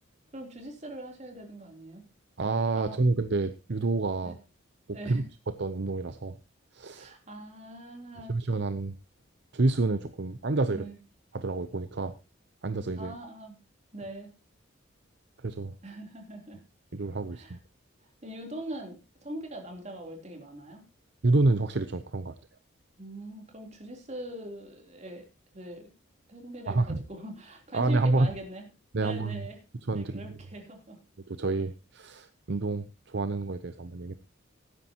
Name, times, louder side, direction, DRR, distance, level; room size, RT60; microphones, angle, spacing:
voice 1, 0.3-2.0 2.7-2.9 4.2-4.3 4.9-5.2 6.9-8.4 10.7-11.0 13.0-13.6 13.9-14.3 15.8-16.6 17.3-17.6 18.0-20.8 23.0-25.2 25.5-25.9 26.3-28.7 28.9-29.6 29.9-31.0, right 1 dB, 35° right, 2 dB, 3.4 m, -42 dB
voice 2, 2.4-4.4 4.9-6.4 6.7-7.1 8.3-8.9 9.5-10.9 11.3-12.1 12.6-13.1 15.4-15.7 16.9-17.4 21.2-22.4 26.7-27.0 27.7-28.3 28.9-29.5 29.9-30.3 31.3-34.1, right 2 dB, 60° right, 11 dB, 0.7 m, -28 dB
18.0 x 9.8 x 2.9 m, 0.29 s
head